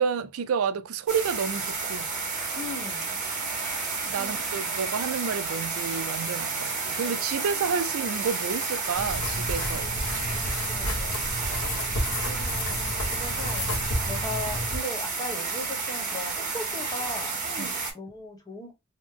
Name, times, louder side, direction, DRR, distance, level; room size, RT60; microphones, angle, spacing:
voice 1, 0.0-2.1 4.1-10.4 17.6-17.7, right 6 dB, 65° right, 0.4 m, -30 dB
sound 1, 1.1-17.9, right 4 dB, 35° right, 1.3 m, -31 dB
voice 2, 2.5-3.2 4.2-4.3 4.6-4.7 10.3-11.3 11.6-11.8 12.2-18.7, left 1 dB, 15° left, 0.9 m, -39 dB
sound 2, 8.9-14.8, left 1 dB, 70° left, 1.1 m, -31 dB
3.2 x 2.0 x 3.5 m
head